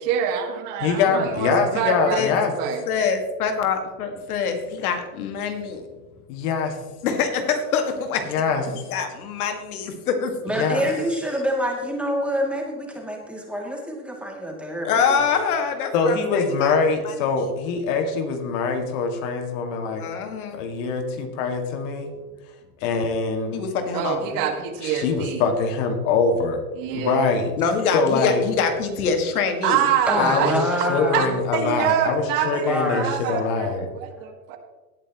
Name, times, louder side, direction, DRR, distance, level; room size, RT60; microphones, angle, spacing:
voice 1, 0.0-2.8 23.9-25.5 26.8-27.3 29.6-30.6 31.1-31.3 31.5-34.6, right 9 dB, 50° right, 5 dB, 1.9 m, -25 dB
voice 2, 0.8-2.5 6.3-6.8 8.3-8.9 10.6-10.9 15.9-20.0 20.5-22.1 22.8-23.6 24.8-26.6 26.9-27.5 27.9-28.4 30.2-30.6 30.9-33.9, left 4 dB, 60° left, 4 dB, 2.2 m, -23 dB
voice 3, 2.9-5.8 7.0-8.2 8.7-10.3 14.8-16.7 17.0-17.2 20.0-20.6 23.5-24.4 27.6-29.9 30.1-30.4, left 6 dB, 80° left, 5 dB, 2.0 m, -25 dB
voice 4, 10.4-15.1 30.1-31.4 32.7-33.2, equal, 5° right, -1 dB, 2.6 m, -26 dB
18.0 x 9.0 x 3.1 m, 1.2 s
supercardioid pair, 125°, 44 cm